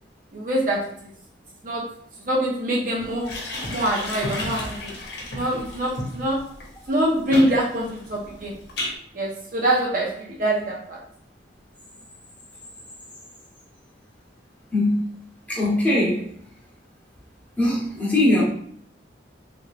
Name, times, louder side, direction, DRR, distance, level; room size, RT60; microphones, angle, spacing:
voice 1, 0.3-1.1 1.6-2.0 2.3-3.4 3.7-4.9 5.3-6.5 6.9-8.5 9.1-11.0, right 1 dB, 45° right, -3 dB, 0.7 m, -24 dB
sound 1, 3.0-8.9, left 1 dB, 70° left, 0.9 m, -33 dB
voice 2, 14.7-15.1 15.5-16.3 17.6-18.4, left 1 dB, 10° left, -7 dB, 1.1 m, -21 dB
3.5 x 3.0 x 2.4 m, 0.62 s
head